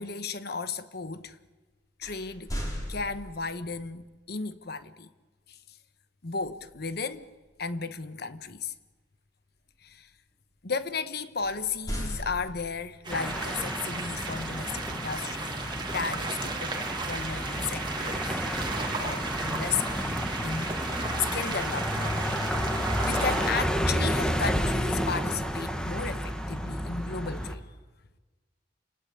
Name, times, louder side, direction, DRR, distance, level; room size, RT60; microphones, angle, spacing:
voice 1, 0.0-1.4 2.0-2.5 2.9-5.1 5.5-5.6 6.2-7.3 7.6-8.7 9.8-10.1 10.6-18.4 19.0-20.1 20.4-21.1 21.3-22.2 22.7-27.6, left 5 dB, 60° left, 1.2 m, -34 dB
sound 1, 2.0-3.7 6.4-6.7 7.1-7.4 11.4-13.0, equal, 20° left, 5.1 m, -37 dB
sound 2, 13.0-23.5, right 4 dB, 25° right, 2.4 m, -35 dB
sound 3, 13.1-27.6, equal, 5° left, 1.7 m, -31 dB
29.5 x 18.5 x 8.7 m
head